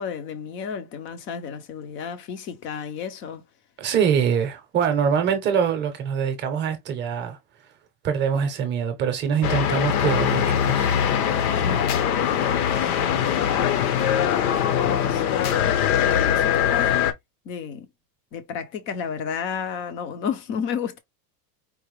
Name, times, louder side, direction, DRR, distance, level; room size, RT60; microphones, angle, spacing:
voice 1, 0.0-3.4 11.6-13.3 14.5-17.0 17.5-17.9 18.3-21.0, left 7 dB, 25° left, 0.5 m, -33 dB
voice 2, 3.8-7.4 8.0-10.9, right 7 dB, 20° right, 0.7 m, -24 dB
sound 1, 9.4-17.1, left 9 dB, 60° left, 0.9 m, -22 dB
4.6 x 2.2 x 3.1 m
supercardioid pair, 165°, 49 cm